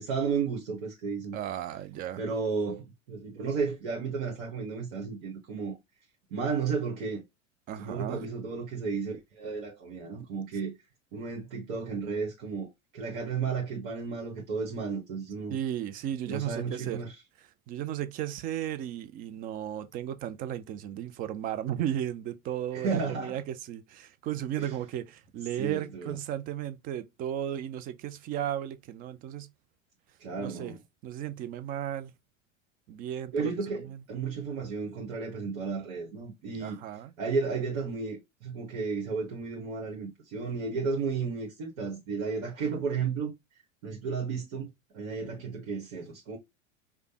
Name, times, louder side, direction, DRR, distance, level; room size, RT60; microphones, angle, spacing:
voice 1, 0.0-1.4 2.2-5.8 6.3-7.2 7.8-10.7 11.1-15.5 16.2-17.1 22.7-23.4 24.6-24.7 25.6-26.2 30.2-30.8 33.3-36.8 37.2-43.3 43.8-46.4, right 5 dB, 60° right, 1.3 m, -33 dB
voice 2, 1.3-2.2 7.7-8.2 15.5-17.0 17.7-29.5 30.4-30.7 31.0-32.1 32.9-34.0 36.6-37.1, right 11 dB, 25° right, 0.4 m, -35 dB
5.0 x 2.2 x 2.8 m
figure-of-eight pair, 85°, 40 cm